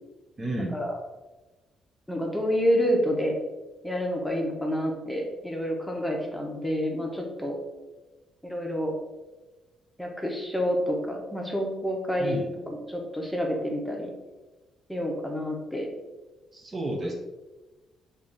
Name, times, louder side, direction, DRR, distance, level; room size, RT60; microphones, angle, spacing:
voice 1, 0.4-0.8 12.2-12.5 16.5-17.1, right 1 dB, 30° right, 0 dB, 0.6 m, -31 dB
voice 2, 2.1-3.3 3.8-7.6 8.4-8.9 10.0-12.4 12.7-14.1 14.9-15.9 17.0-17.1, equal, 5° left, 0 dB, 0.8 m, -28 dB
3.3 x 2.5 x 4.0 m, 1.1 s
cardioid pair, 90°, 0 cm